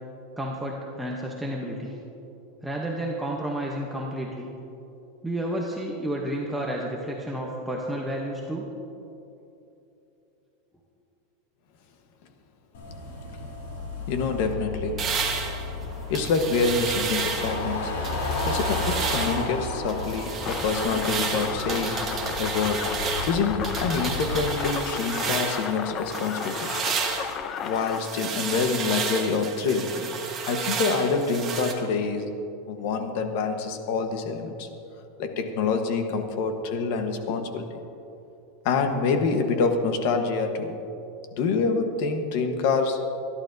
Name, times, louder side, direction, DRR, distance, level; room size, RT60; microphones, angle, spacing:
voice 1, 0.4-2.0 2.6-4.5 5.2-8.6, right 1 dB, 5° right, -3 dB, 0.8 m, -31 dB
sound 1, 12.7-24.4, left 2 dB, 80° left, 3.2 m, -33 dB
voice 2, 14.1-15.1 16.1-18.0 18.5-26.7 27.6-30.0 30.5-32.3 32.7-34.7 35.2-37.8 38.6-40.8 41.3-43.1, left 4 dB, 50° left, 6 dB, 1.1 m, -26 dB
sound 2, 15.0-17.6 18.0-19.5 19.9-25.8 26.1-31.7, right 6 dB, 20° right, 1.2 m, -32 dB
sound 3, 20.4-28.0, left 7 dB, 25° left, 0.5 m, -34 dB
25.0 x 11.0 x 2.6 m, 2.9 s
supercardioid pair, 175°, 0 cm